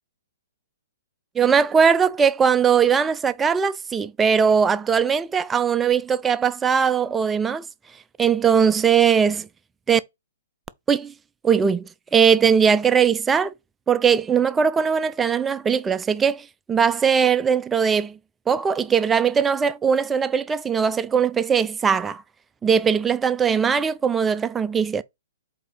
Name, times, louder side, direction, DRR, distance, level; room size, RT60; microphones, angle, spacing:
voice 1, 1.4-7.7 8.2-9.5 9.9-10.0 10.9-11.1 11.4-13.5 13.9-18.2 18.5-22.2 22.6-25.0, right 7 dB, 10° right, 0.3 m, -20 dB
7.9 x 2.7 x 4.8 m
hypercardioid pair, 150°, 0 cm